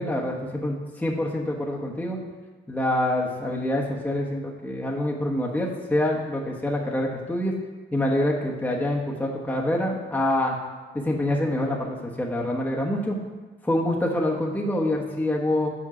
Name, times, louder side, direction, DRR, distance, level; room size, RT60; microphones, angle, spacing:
voice 1, 0.0-2.2 2.7-7.5 7.9-10.6 10.9-13.2 13.6-15.7, left 1 dB, 10° left, -2 dB, 1.2 m, -26 dB
7.5 x 4.4 x 6.0 m, 1.3 s
cardioid pair, 90°, 20 cm